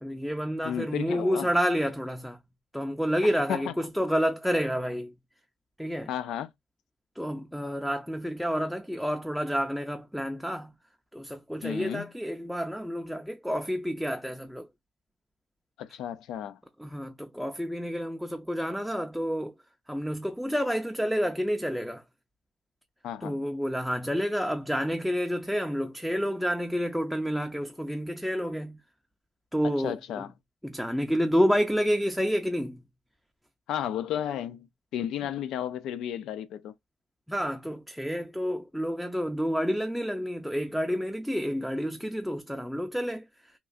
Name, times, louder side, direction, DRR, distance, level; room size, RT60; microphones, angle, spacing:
voice 1, 0.0-2.4 2.7-5.1 5.8-6.1 7.2-10.7 11.1-14.7 16.8-19.5 19.9-22.0 23.2-28.8 29.5-30.2 30.6-32.8 37.3-43.5, equal, ahead, 0.4 m, -29 dB
voice 2, 0.6-1.5 3.5-3.6 6.1-6.5 11.6-12.0 15.8-16.6 23.0-23.4 29.8-30.3 33.7-34.7 34.9-36.7, left 10 dB, 85° left, 0.4 m, -33 dB
3.0 x 2.3 x 2.4 m
cardioid pair, 90°, 0 cm